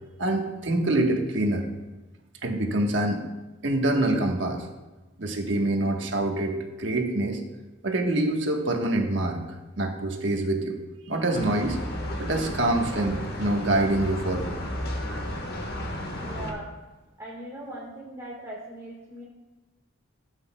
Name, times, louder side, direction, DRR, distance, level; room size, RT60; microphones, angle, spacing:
voice 1, 0.2-1.7 2.4-3.2 3.6-4.7 5.2-7.4 7.8-9.4 9.8-10.8 11.1-11.8 12.2-14.6, right 1 dB, 65° right, 2 dB, 1.2 m, -25 dB
sound 1, 11.3-16.5, left 1 dB, 50° left, 1.4 m, -33 dB
voice 2, 16.2-16.8 17.2-19.2, right 1 dB, 15° right, -4 dB, 1.5 m, -39 dB
16.0 x 8.1 x 2.2 m, 1.2 s
head